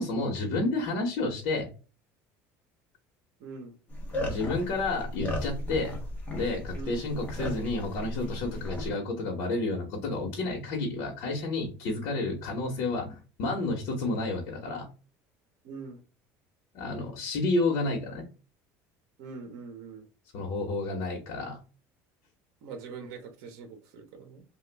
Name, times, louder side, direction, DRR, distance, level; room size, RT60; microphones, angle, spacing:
voice 1, 0.0-1.7 4.3-5.9 6.3-14.8 16.7-18.2 20.3-21.6, left 2 dB, 65° left, 0 dB, 0.9 m, -30 dB
voice 2, 3.4-3.8 6.7-7.0 15.6-16.0 19.2-20.1 22.6-24.4, right 5 dB, 70° right, 7 dB, 0.8 m, -43 dB
sound 1, 3.9-8.9, left 1 dB, 20° left, 0.8 m, -35 dB
2.9 x 2.3 x 3.3 m, 0.33 s
cardioid pair, 155°, 7 cm